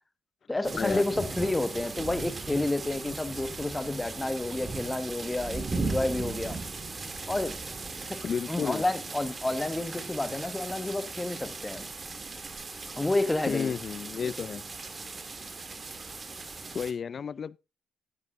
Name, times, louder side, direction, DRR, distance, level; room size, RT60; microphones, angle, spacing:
voice 1, 0.5-6.6 7.3-7.6 8.1-8.2 8.5-11.9 13.0-13.7, left 2 dB, 15° left, 1.4 m, -30 dB
sound 1, 0.6-16.9, right 3 dB, 30° right, 1.7 m, -38 dB
voice 2, 8.2-8.8 13.5-14.6 16.7-17.6, left 6 dB, 50° left, 0.4 m, -32 dB
13.5 x 9.5 x 2.5 m
cardioid pair, 90°, 0 cm